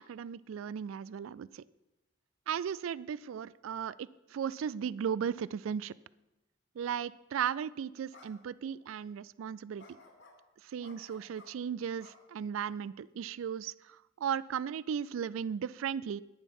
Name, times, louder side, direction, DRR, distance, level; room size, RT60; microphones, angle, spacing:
voice 1, 0.0-1.6 2.5-5.9 6.8-10.0 10.6-16.2, right 8 dB, 85° right, 20 dB, 0.3 m, -36 dB
sound 1, 7.3-7.5 8.1-8.3 8.7-8.8 9.8-10.4 10.8-11.5 12.0-12.8, left 3 dB, 65° left, 2.5 m, -56 dB
11.0 x 10.5 x 5.4 m, 0.97 s
head